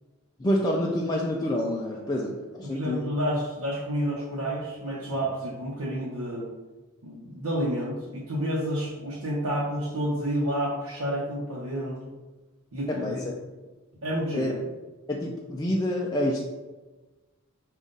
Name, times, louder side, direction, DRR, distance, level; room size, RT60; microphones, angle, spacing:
voice 1, 0.4-3.0 12.9-13.3 14.3-14.6 15.1-16.4, left 1 dB, 20° left, -2 dB, 0.3 m, -27 dB
voice 2, 2.6-6.5 7.0-12.0 12.7-13.2 14.0-14.5, equal, 75° right, -6 dB, 0.9 m, -30 dB
5.3 x 2.4 x 3.8 m, 1.2 s
head